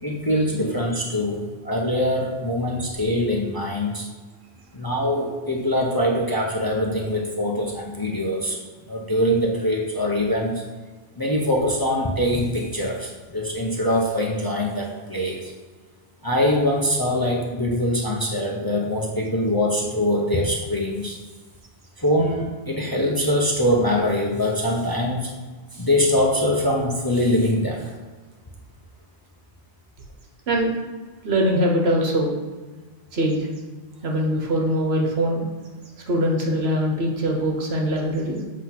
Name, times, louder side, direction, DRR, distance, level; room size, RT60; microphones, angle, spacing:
voice 1, 0.0-4.1 4.7-8.6 8.9-10.6 11.2-15.5 16.2-21.2 22.0-25.3 25.7-27.9, left 1 dB, 20° left, -1 dB, 0.8 m, -23 dB
voice 2, 31.2-32.4 33.1-33.5 34.0-35.4 36.1-38.4, equal, 60° right, 1 dB, 1.3 m, -22 dB
8.0 x 3.1 x 5.9 m, 1.3 s
omnidirectional pair, 1.2 m